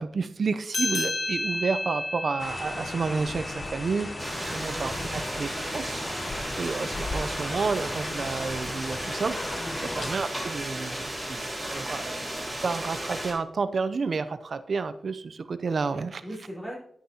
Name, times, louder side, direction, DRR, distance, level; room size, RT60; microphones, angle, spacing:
voice 1, 0.0-4.1 4.4-6.0 6.6-9.4 10.0-12.2 12.5-16.2, right 4 dB, 60° right, 12 dB, 0.5 m, -30 dB
sound 1, 0.7-5.6, left 2 dB, 80° left, 1.8 m, -33 dB
sound 2, 2.4-10.2, left 2 dB, 35° left, 0.8 m, -36 dB
sound 3, 4.2-13.3, right 1 dB, 10° right, 3.1 m, -34 dB
voice 2, 4.3-5.7 9.6-10.0 16.2-16.8, equal, 15° left, -5 dB, 4.1 m, -41 dB
9.5 x 9.5 x 2.8 m, 0.68 s
wide cardioid pair, 115°, 0 cm